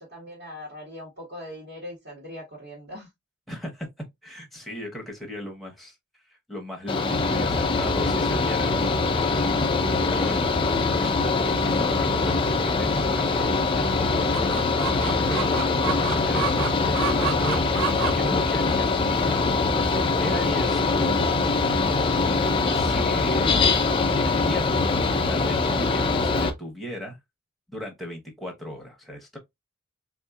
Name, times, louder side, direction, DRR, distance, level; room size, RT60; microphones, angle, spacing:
voice 1, 0.1-3.1, left 1 dB, 50° right, 1.3 m, -40 dB
voice 2, 3.5-3.9 4.2-5.9 6.3-8.7 9.9-10.5 10.8-11.1 11.4-17.7 18.1-19.4 20.2-21.4 22.7-23.5 24.0-24.9 25.3-27.2 27.7-29.4, equal, ahead, 0.8 m, -36 dB
Mechanical fan, 6.9-26.5, left 3 dB, 25° left, 0.4 m, -23 dB
Chicken rooster, 14.3-25.4, right 9 dB, 75° right, 0.3 m, -35 dB
3.6 x 2.5 x 2.2 m
head